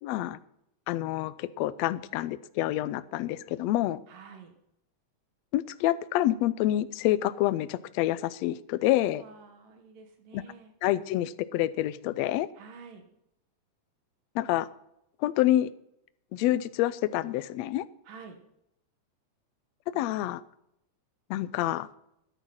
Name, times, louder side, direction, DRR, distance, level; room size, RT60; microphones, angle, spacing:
voice 1, 0.0-0.4 0.9-4.0 5.5-9.2 10.3-10.4 10.8-12.5 14.3-14.7 15.2-15.7 16.3-17.8 19.9-20.4 21.3-21.9, left 14 dB, 85° left, 15 dB, 1.5 m, -27 dB
voice 2, 4.1-4.5 9.2-10.7 12.5-13.0 18.0-18.4 19.9-20.1, right 5 dB, 80° right, 6 dB, 3.2 m, -49 dB
13.5 x 10.5 x 5.7 m, 0.78 s
omnidirectional pair, 3.8 m